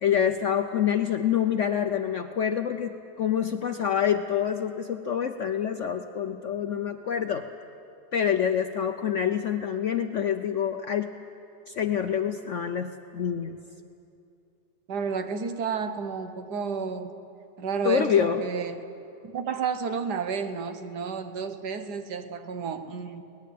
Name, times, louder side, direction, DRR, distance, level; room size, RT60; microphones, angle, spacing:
voice 1, 0.0-7.5 8.1-11.1 11.7-13.6 17.8-18.5, left 8 dB, 60° left, 7 dB, 0.8 m, -26 dB
voice 2, 14.9-17.2 17.6-18.8 19.2-23.2, right 5 dB, 65° right, 9 dB, 1.6 m, -31 dB
23.5 x 19.0 x 8.5 m, 2.6 s
omnidirectional pair, 1.9 m